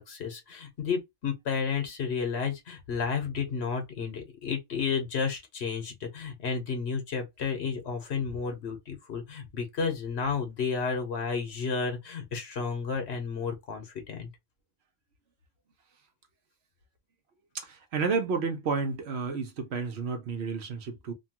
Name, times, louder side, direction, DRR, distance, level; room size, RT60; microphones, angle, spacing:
voice 1, 0.0-14.3, left 5 dB, 85° left, 1.2 m, -32 dB
voice 2, 17.5-21.1, right 5 dB, 90° right, 1.1 m, -31 dB
3.0 x 2.3 x 2.8 m
omnidirectional pair, 1.1 m